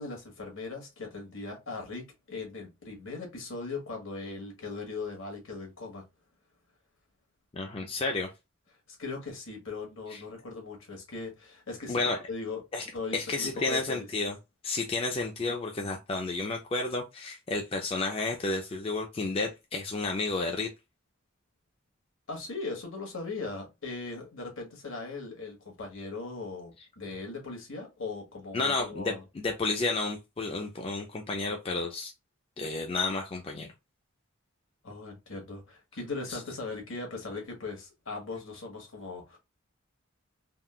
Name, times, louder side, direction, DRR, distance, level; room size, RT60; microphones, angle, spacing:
voice 1, 0.0-6.0 9.0-12.6 12.9-14.1 22.3-29.2 34.8-39.4, left 3 dB, 70° left, 1.3 m, -39 dB
voice 2, 7.5-8.3 10.1-10.2 11.9-12.2 12.7-12.8 13.1-14.4 14.6-20.7 28.5-32.1 32.6-33.7 36.3-36.4, left 3 dB, 25° left, 0.4 m, -31 dB
3.5 x 2.3 x 2.3 m
head